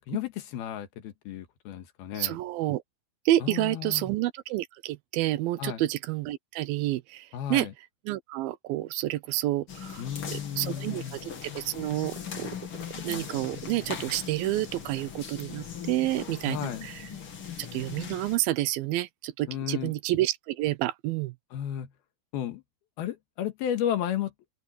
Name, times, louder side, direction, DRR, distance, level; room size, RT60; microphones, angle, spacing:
voice 1, 0.1-2.4 3.4-4.1 5.6-5.8 7.3-7.7 10.0-11.2 16.5-16.9 19.5-19.9 21.5-21.9 22.3-22.6 23.0-24.3, left 10 dB, 90° left, 3.5 m, -33 dB
voice 2, 2.2-2.8 3.3-7.7 8.1-10.0 10.3-12.5 13.0-17.1 17.6-21.3, right 15 dB, 80° right, 2.5 m, -29 dB
sound 1, 9.7-18.4, left 7 dB, 40° left, 2.6 m, -40 dB
open air
omnidirectional pair, 4.3 m